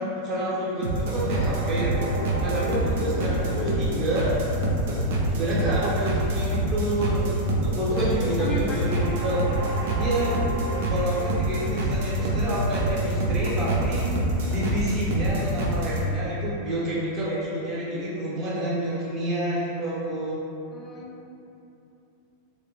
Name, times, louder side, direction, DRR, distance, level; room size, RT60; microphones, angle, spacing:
voice 1, 0.0-2.0 2.4-4.4 5.3-7.3 7.6-9.4 10.0-10.4 10.9-14.1 14.5-20.4, right 1 dB, 30° right, -7 dB, 0.8 m, -28 dB
sound 1, 0.8-16.1, right 1 dB, 55° right, 0.3 m, -26 dB
voice 2, 7.9-8.8 20.7-21.3, equal, 25° left, -2 dB, 0.4 m, -34 dB
2.5 x 2.0 x 2.8 m, 2.8 s
figure-of-eight pair, 90°, 0 cm